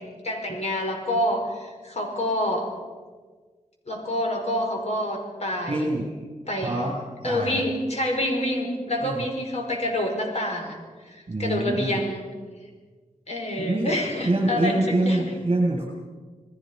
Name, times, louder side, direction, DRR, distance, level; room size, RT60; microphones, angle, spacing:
voice 1, 0.0-2.7 3.9-5.9 6.5-6.8 7.2-10.8 11.1-12.2 13.3-14.8 15.0-15.2, left 1 dB, 50° left, 2 dB, 5.3 m, -27 dB
voice 2, 5.7-6.0 6.6-6.9 7.2-7.6 8.9-9.2 11.3-12.0 13.6-13.9 14.3-15.8, right 2 dB, 45° right, -2 dB, 7.4 m, -25 dB
29.0 x 20.0 x 5.5 m, 1.4 s
wide cardioid pair, 110°, 14 cm